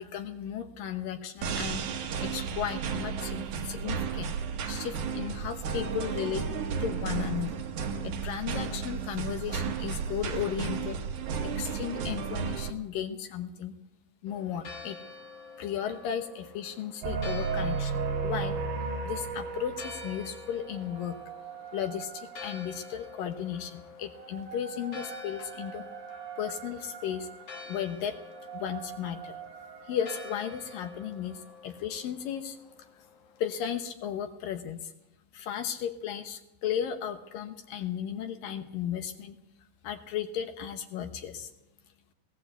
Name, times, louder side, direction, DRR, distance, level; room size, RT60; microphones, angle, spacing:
voice 1, 0.0-1.8 2.2-4.4 4.7-6.5 6.8-7.6 8.0-11.0 11.6-13.7 14.2-15.0 15.6-18.6 19.0-21.2 21.7-25.8 26.4-27.3 27.7-28.2 28.5-29.4 29.9-32.6 33.4-34.9 35.3-39.4 39.8-41.5, left 9 dB, 70° left, 7 dB, 2.5 m, -35 dB
sound 1, 1.4-12.7, right 6 dB, 60° right, 2.5 m, -33 dB
Church bell, 14.3-33.7, left 4 dB, 55° left, 2.0 m, -48 dB
sound 2, 17.0-23.2 24.0-31.1, right 5 dB, 90° right, 4.4 m, -37 dB
19.5 x 16.5 x 8.1 m, 0.88 s
omnidirectional pair, 4.5 m